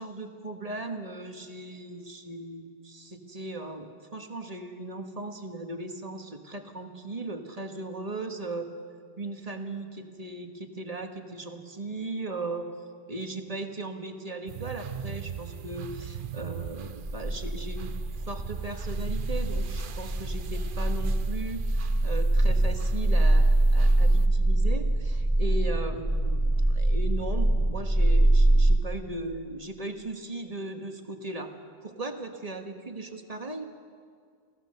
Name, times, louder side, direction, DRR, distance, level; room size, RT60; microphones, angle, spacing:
voice 1, 0.0-8.7 9.2-12.7 13.1-17.9 18.3-33.7, right 2 dB, 35° right, 4 dB, 1.6 m, -37 dB
sound 1, 14.5-24.3, right 7 dB, 55° right, 0.8 m, -41 dB
sound 2, 17.0-28.8, right 1 dB, 10° right, 1.8 m, -24 dB
28.5 x 16.0 x 6.7 m, 2.1 s
omnidirectional pair, 1.1 m